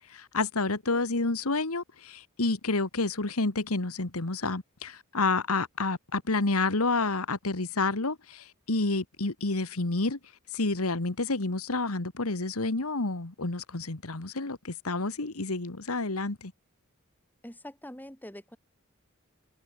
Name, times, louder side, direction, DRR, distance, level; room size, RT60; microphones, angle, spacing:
voice 1, 0.1-10.2 10.5-16.5, left 3 dB, 85° left, 1.8 m, -29 dB
voice 2, 17.4-18.6, left 1 dB, 10° left, 7.2 m, -44 dB
head